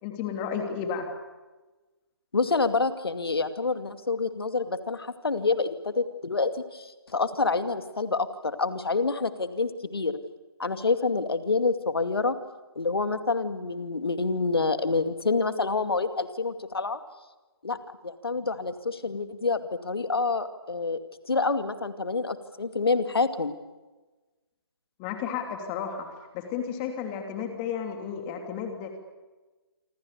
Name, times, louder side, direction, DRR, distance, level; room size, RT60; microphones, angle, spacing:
voice 1, 0.0-1.1 25.0-28.9, left 7 dB, 25° left, 5 dB, 3.0 m, -33 dB
voice 2, 2.3-10.2 10.6-12.4 12.8-17.0 17.6-21.0 21.2-23.5, left 4 dB, 70° left, 10 dB, 2.3 m, -27 dB
27.5 x 25.0 x 6.9 m, 1.2 s
figure-of-eight pair, 140°, 13 cm